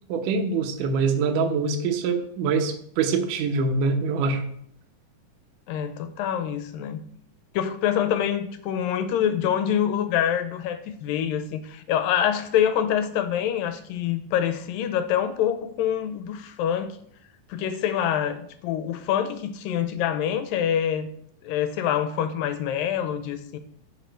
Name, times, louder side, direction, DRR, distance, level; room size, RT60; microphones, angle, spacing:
voice 1, 0.1-4.4, right 4 dB, 75° right, 4 dB, 2.5 m, -24 dB
voice 2, 5.7-7.0 7.5-17.0 17.5-21.1 21.4-23.6, left 9 dB, 85° left, 10 dB, 2.5 m, -26 dB
10.5 x 5.8 x 4.6 m, 0.67 s
omnidirectional pair, 4.0 m